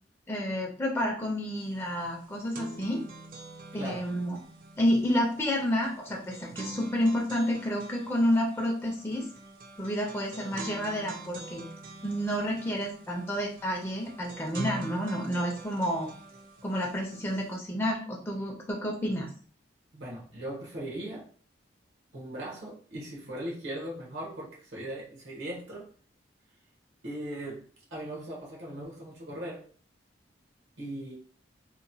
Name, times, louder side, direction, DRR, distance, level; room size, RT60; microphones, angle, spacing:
voice 1, 0.3-3.0 3.7-4.4 4.8-9.3 9.8-11.7 12.0-16.1 16.6-19.3, equal, 15° left, -1 dB, 0.4 m, -30 dB
sound 1, 1.6-1.7 2.0-17.6, right 2 dB, 50° right, 0.4 m, -45 dB
voice 2, 3.7-4.1 19.9-21.3 22.1-25.9 27.0-27.7 27.9-29.6 30.8-31.2, right 1 dB, 80° right, -3 dB, 0.9 m, -39 dB
2.9 x 2.1 x 2.6 m, 0.43 s
head